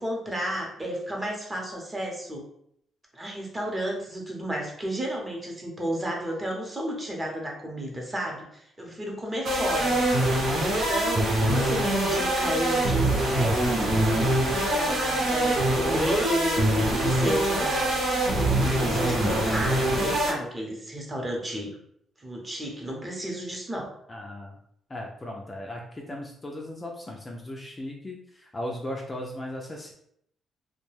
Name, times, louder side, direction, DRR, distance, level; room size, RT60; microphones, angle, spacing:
voice 1, 0.0-2.4 3.1-10.0 10.5-18.0 18.4-21.8 22.2-23.9, equal, 20° right, 0 dB, 0.8 m, -32 dB
sound 1, 9.4-20.3, right 1 dB, 75° right, 0.9 m, -24 dB
voice 2, 24.1-24.6 24.9-29.9, left 1 dB, 25° left, 0 dB, 0.4 m, -37 dB
2.3 x 2.2 x 3.2 m, 0.71 s
cardioid pair, 90°, 0 cm